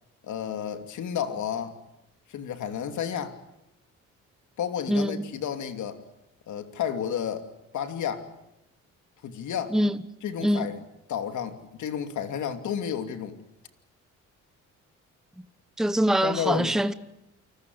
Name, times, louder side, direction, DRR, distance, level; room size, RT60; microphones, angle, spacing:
voice 1, 0.2-1.7 2.3-3.4 4.6-6.0 6.5-7.4 7.7-8.3 9.2-9.8 10.2-13.4 16.2-16.7, left 8 dB, 75° left, 2.9 m, -31 dB
voice 2, 4.9-5.3 9.7-10.0 10.4-10.7 15.8-16.9, right 1 dB, ahead, 1.0 m, -24 dB
29.0 x 19.5 x 8.0 m
cardioid pair, 90°, 30 cm